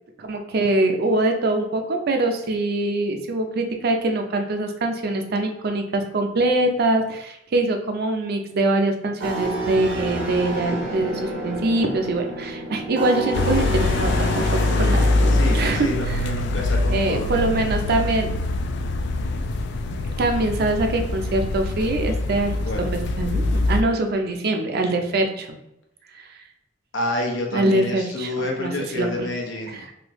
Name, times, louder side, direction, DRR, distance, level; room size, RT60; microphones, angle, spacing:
voice 1, 0.2-16.3 16.9-18.4 20.2-22.9 23.2-25.6 27.5-29.3 29.7-29.9, right 2 dB, 55° right, 5 dB, 0.5 m, -23 dB
sound 1, 9.2-15.8, right 2 dB, 85° right, 0.9 m, -30 dB
sound 2, 13.3-23.8, left 2 dB, 65° left, 0.3 m, -23 dB
voice 2, 15.3-17.4 22.6-22.9 26.9-29.8, left 1 dB, 80° left, 1 dB, 0.8 m, -28 dB
3.2 x 2.6 x 3.0 m, 0.84 s
head